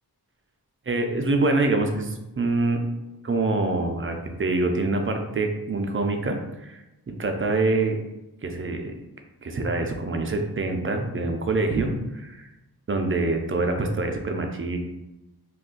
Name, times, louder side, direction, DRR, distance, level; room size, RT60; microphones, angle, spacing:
voice 1, 0.9-2.8 3.2-8.0 8.4-8.9 9.4-12.5 12.9-14.8, right 2 dB, 35° right, 4 dB, 0.4 m, -25 dB
2.4 x 2.3 x 3.7 m, 0.98 s
wide cardioid pair, 60°, 38 cm